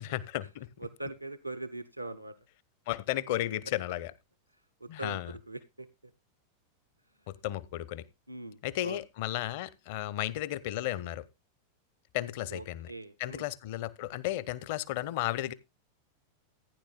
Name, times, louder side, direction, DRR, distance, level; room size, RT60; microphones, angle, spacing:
voice 1, 0.0-0.7 2.9-4.1 4.9-5.3 7.3-8.0 8.6-11.2 12.1-12.9 13.2-15.5, left 14 dB, 50° left, 0.8 m, -34 dB
voice 2, 0.8-2.4 4.8-5.2 5.5-5.9 8.3-9.0 12.5-13.5, right 2 dB, 90° right, 0.7 m, -41 dB
15.0 x 10.0 x 2.3 m
figure-of-eight pair, 90°, 0 cm